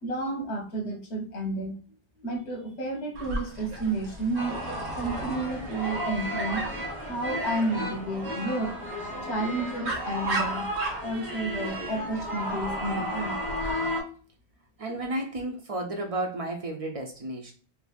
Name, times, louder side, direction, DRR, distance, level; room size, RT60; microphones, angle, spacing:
voice 1, 0.0-1.8 2.2-4.6 5.0-6.6 7.0-10.7 11.0-13.4, right 2 dB, 80° left, 3 dB, 1.2 m, -31 dB
Dog, 3.1-13.7, right 2 dB, 85° right, 1.1 m, -38 dB
sound 1, 4.3-14.0, equal, 20° right, 1.3 m, -33 dB
voice 2, 14.8-17.5, right 1 dB, 50° right, 2 dB, 0.4 m, -32 dB
3.2 x 2.6 x 2.3 m, 0.40 s
omnidirectional pair, 1.1 m